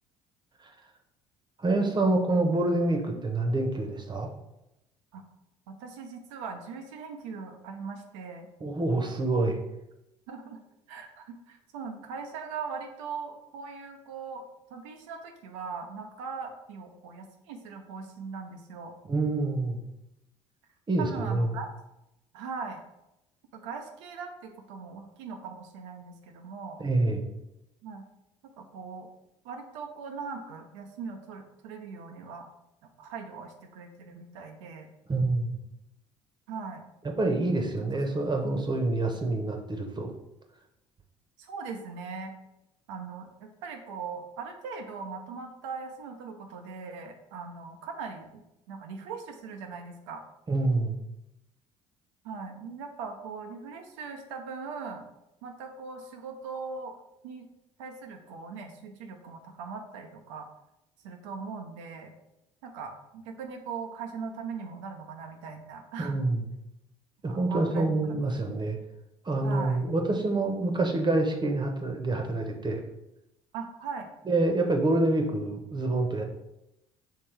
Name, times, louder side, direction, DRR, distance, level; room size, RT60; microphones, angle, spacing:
voice 1, 1.6-4.3 8.6-9.6 19.1-19.8 20.9-21.6 26.8-27.3 35.1-35.5 37.2-40.1 50.5-51.0 66.0-66.4 67.2-68.8 69.2-72.8 74.2-76.2, right 2 dB, 30° right, 3 dB, 0.9 m, -27 dB
voice 2, 5.7-8.5 10.3-10.6 10.9-14.4 14.7-18.9 21.0-21.7 22.3-22.8 23.5-26.8 27.8-28.1 28.6-29.1 29.4-32.5 33.0-34.9 36.5-36.8 41.4-42.3 42.9-48.4 48.7-50.2 52.2-55.1 55.4-57.0 57.2-57.5 57.8-60.5 61.0-62.1 62.6-66.2 67.3-68.1 69.4-69.8 73.5-74.1, right 5 dB, 80° right, 4 dB, 0.6 m, -40 dB
4.6 x 3.3 x 3.3 m, 0.88 s
hypercardioid pair, 60°, 16 cm